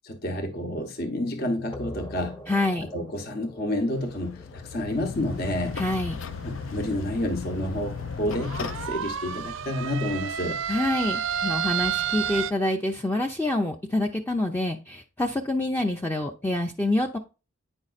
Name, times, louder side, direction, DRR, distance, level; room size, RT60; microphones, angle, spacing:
voice 1, 0.1-2.4 2.9-5.8 6.4-10.6, left 1 dB, 55° left, 0.9 m, -29 dB
sound 1, 1.7-7.1, left 1 dB, 25° left, 1.0 m, -45 dB
voice 2, 2.5-2.9 5.8-6.2 10.7-17.2, left 1 dB, 10° left, 0.5 m, -26 dB
sound 2, 3.7-8.9, left 6 dB, 85° left, 0.4 m, -36 dB
sound 3, 5.2-12.5, right 8 dB, 75° right, 0.5 m, -32 dB
8.8 x 5.3 x 2.4 m
head